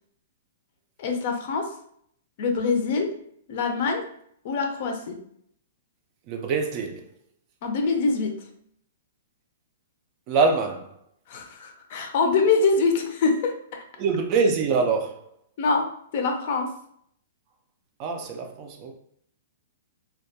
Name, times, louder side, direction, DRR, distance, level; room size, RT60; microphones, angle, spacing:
voice 1, 1.0-1.7 2.4-3.1 3.5-4.1 4.4-5.2 7.6-8.4 11.3-13.8 15.6-15.9 16.1-16.7, left 4 dB, 50° left, 0.4 m, -24 dB
voice 2, 6.3-7.0 10.3-10.9 14.0-15.2 18.0-19.0, right 4 dB, 35° right, 0.3 m, -24 dB
2.2 x 2.1 x 2.7 m
hypercardioid pair, 150°, 0 cm